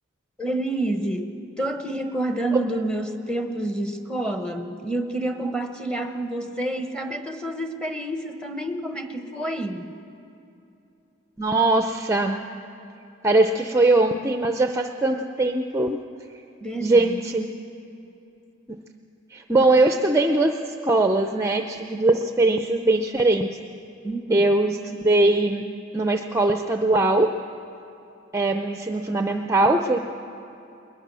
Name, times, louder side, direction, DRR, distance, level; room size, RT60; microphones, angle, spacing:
voice 1, 0.4-9.9 16.6-17.4 24.0-24.6, right 1 dB, 5° left, 5 dB, 1.1 m, -28 dB
voice 2, 11.4-12.5 13.2-16.0 16.8-17.5 19.3-20.6 20.8-23.6 24.3-25.6 25.9-27.3 28.3-30.0, right 2 dB, 15° right, 6 dB, 0.6 m, -21 dB
21.0 x 20.5 x 6.2 m, 2.8 s
head